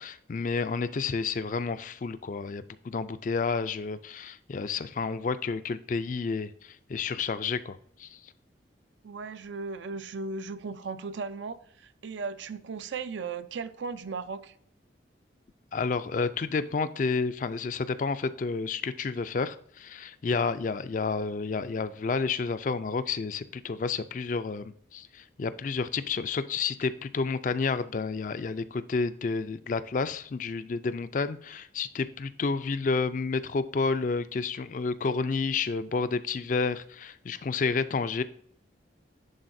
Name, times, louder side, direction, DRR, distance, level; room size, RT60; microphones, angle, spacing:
voice 1, 0.0-8.3 15.7-38.2, left 4 dB, 45° left, 13 dB, 0.4 m, -30 dB
voice 2, 9.0-14.5, right 4 dB, 75° right, 12 dB, 0.5 m, -36 dB
10.5 x 3.9 x 2.6 m, 0.63 s
head